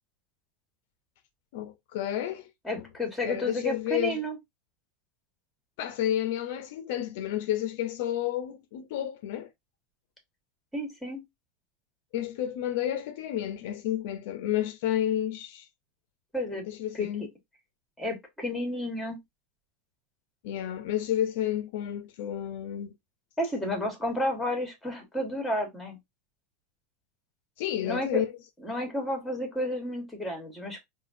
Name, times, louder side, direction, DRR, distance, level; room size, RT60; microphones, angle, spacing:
voice 1, 1.5-2.5 3.2-4.2 5.8-9.5 12.1-15.7 16.7-17.3 20.4-23.0 27.6-28.3, left 11 dB, 65° left, 0.6 m, -31 dB
voice 2, 2.6-4.4 10.7-11.2 16.3-16.6 16.9-17.1 18.0-19.2 23.4-26.0 27.8-28.2 28.6-30.8, left 1 dB, ahead, 1.3 m, -31 dB
4.9 x 2.3 x 2.6 m
supercardioid pair, 150°, 0 cm